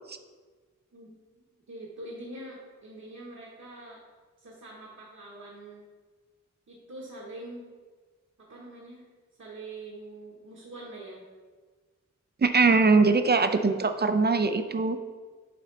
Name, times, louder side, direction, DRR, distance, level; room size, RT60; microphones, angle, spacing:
voice 1, 1.7-4.0 4.4-5.8 6.7-7.7 8.5-9.0 9.4-11.2, right 2 dB, 65° right, -6 dB, 1.3 m, -44 dB
voice 2, 12.4-15.0, right 4 dB, 35° right, 9 dB, 0.5 m, -22 dB
8.5 x 3.9 x 3.3 m, 1.5 s
wide cardioid pair, 70°, 31 cm